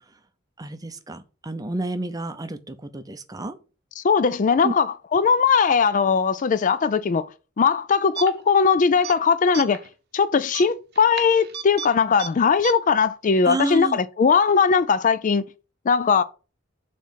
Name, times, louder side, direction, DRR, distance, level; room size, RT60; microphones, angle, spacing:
voice 1, 0.6-3.5 4.6-4.7 13.4-14.0, right 2 dB, 20° right, 0.6 m, -30 dB
voice 2, 4.0-7.2 7.6-9.8 10.1-15.4 15.9-16.2, left 5 dB, 40° left, 0.4 m, -19 dB
sound 1, 8.2-8.6 8.9-9.2 9.5-9.9 10.5-11.9 12.2-12.3 12.6-12.7, right 8 dB, 55° right, 0.8 m, -34 dB
7.0 x 3.2 x 5.6 m
head